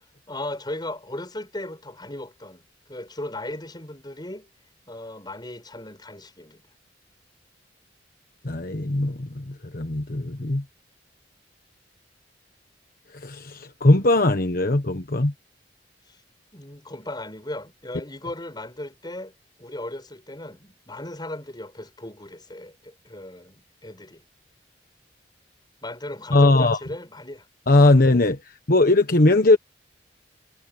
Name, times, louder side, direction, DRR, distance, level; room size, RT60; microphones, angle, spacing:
voice 1, 0.3-4.5 4.9-6.6 16.5-19.3 19.6-24.2 25.8-27.5, left 1 dB, 25° left, 7.7 m, -37 dB
voice 2, 8.4-10.6 13.1-15.3 26.3-26.8 27.7-29.6, left 2 dB, 55° left, 1.3 m, -19 dB
head